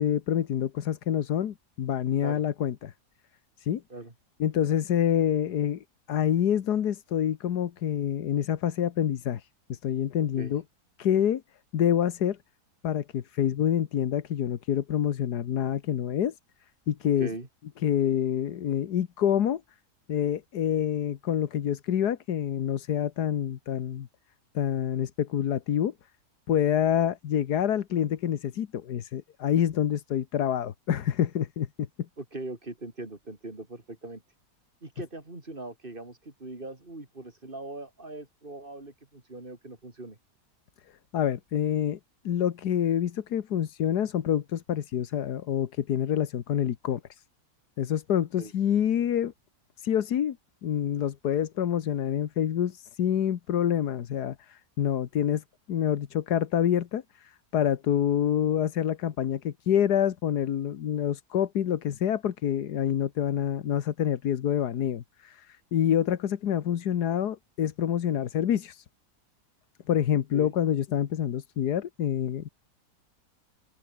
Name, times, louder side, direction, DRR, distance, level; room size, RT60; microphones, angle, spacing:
voice 1, 0.0-2.9 3.6-3.8 4.4-10.6 11.0-11.4 11.7-12.4 12.8-16.3 16.9-17.3 17.8-19.6 20.1-24.1 24.5-25.9 26.5-31.7 41.1-42.0 42.2-47.2 47.8-49.3 49.8-50.4 50.6-68.8 69.9-72.5, left 9 dB, 75° left, 1.6 m, -27 dB
voice 2, 32.2-34.2 34.8-40.2 48.4-48.5 70.3-70.5, right 2 dB, 30° right, 4.3 m, -40 dB
open air
omnidirectional pair, 1.7 m